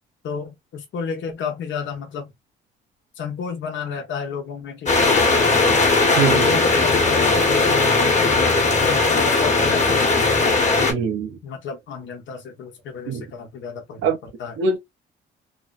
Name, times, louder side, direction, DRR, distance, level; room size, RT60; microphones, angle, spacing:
voice 1, 0.2-2.3 3.2-5.9 6.3-10.9 11.4-14.6, left 6 dB, 70° left, 0.9 m, -31 dB
sound 1, 4.9-10.9, left 3 dB, 35° left, 1.1 m, -18 dB
voice 2, 6.2-6.6 10.9-11.3 13.1-13.2 14.0-14.2 14.6-14.8, right 5 dB, 90° right, 0.8 m, -22 dB
3.0 x 2.0 x 2.4 m
cardioid pair, 90°, 20 cm